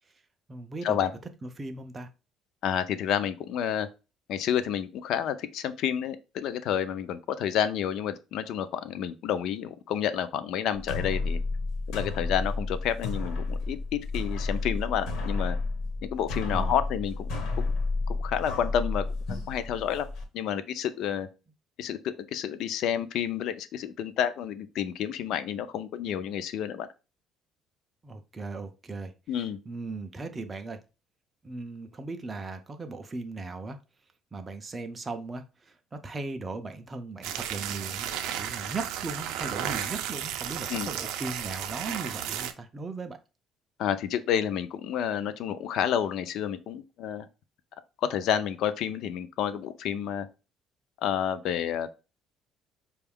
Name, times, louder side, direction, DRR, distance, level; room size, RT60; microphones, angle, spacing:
voice 1, 0.5-1.1 1.4-2.1 16.5-16.7 28.0-29.1 29.7-30.8 31.4-33.8 34.3-38.1 38.4-43.2, right 3 dB, 15° right, 0.3 m, -37 dB
voice 2, 2.6-3.9 4.3-11.4 11.9-15.6 16.0-17.7 18.1-19.0 19.3-20.1 20.3-21.3 21.8-26.9 29.3-29.6 40.7-40.9 43.8-47.3 48.0-50.3 51.0-52.0, left 9 dB, 55° left, 0.4 m, -30 dB
sound 1, 10.7-20.2, left 3 dB, 75° left, 1.1 m, -31 dB
sound 2, 37.2-42.5, right 10 dB, 90° right, 0.4 m, -34 dB
5.1 x 2.3 x 3.4 m
cardioid pair, 180°, 0 cm